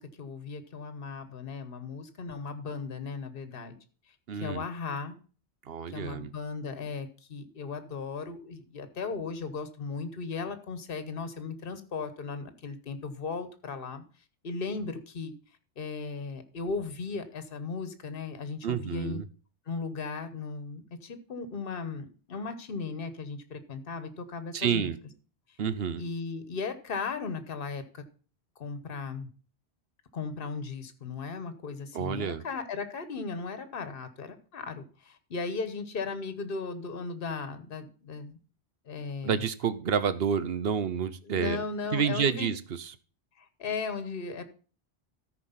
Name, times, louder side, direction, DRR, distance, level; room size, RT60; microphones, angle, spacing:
voice 1, 0.0-3.8 4.3-5.2 5.9-14.0 14.4-15.3 15.8-19.2 19.7-24.9 26.0-28.0 28.6-29.3 30.1-38.4 38.8-39.4 41.2-42.6 43.4-44.4, left 4 dB, 60° left, 10 dB, 1.3 m, -36 dB
voice 2, 4.3-4.6 5.7-6.3 18.6-19.3 24.5-25.0 25.6-26.0 31.9-32.4 39.2-41.6 41.9-42.9, right 7 dB, 65° right, 14 dB, 0.9 m, -29 dB
13.5 x 4.7 x 5.7 m, 0.38 s
omnidirectional pair, 1.1 m